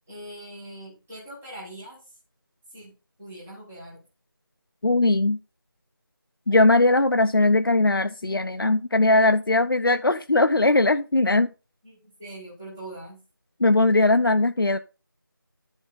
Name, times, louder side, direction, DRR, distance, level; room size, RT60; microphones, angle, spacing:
voice 1, 0.1-2.2 2.7-4.0 11.8-13.2, right 1 dB, 5° right, -8 dB, 0.7 m, -42 dB
voice 2, 4.8-5.4 6.5-11.5 13.6-14.8, left 2 dB, 70° left, 8 dB, 0.6 m, -20 dB
11.0 x 5.3 x 3.8 m, 0.31 s
figure-of-eight pair, 170°, 12 cm